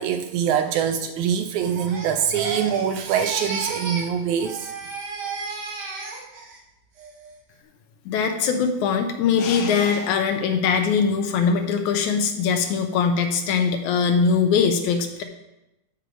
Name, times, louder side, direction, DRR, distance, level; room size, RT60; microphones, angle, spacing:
voice 1, 0.0-4.6, right 8 dB, 75° right, 6 dB, 1.9 m, -24 dB
Crying sobbing, 1.6-4.1 4.4-6.6 7.0-7.4, right 4 dB, 60° right, 1.0 m, -33 dB
voice 2, 8.1-15.2, left 6 dB, 75° left, 6 dB, 2.0 m, -21 dB
13.0 x 4.6 x 5.1 m, 0.93 s
omnidirectional pair, 3.7 m